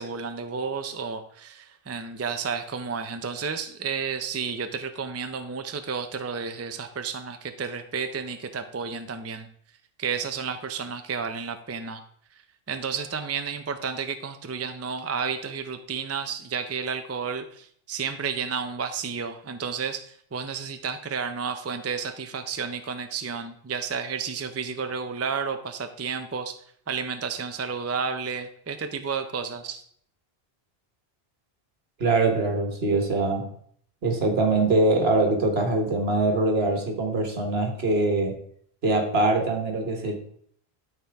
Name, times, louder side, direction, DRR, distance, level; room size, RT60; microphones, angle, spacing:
voice 1, 0.0-9.5 10.0-12.0 12.7-26.6 26.9-29.8, right 5 dB, 20° right, 8 dB, 0.4 m, -31 dB
voice 2, 32.0-33.5 34.0-38.4 38.8-40.2, right 2 dB, 75° right, 2 dB, 1.7 m, -23 dB
12.5 x 4.4 x 3.5 m, 0.63 s
omnidirectional pair, 1.1 m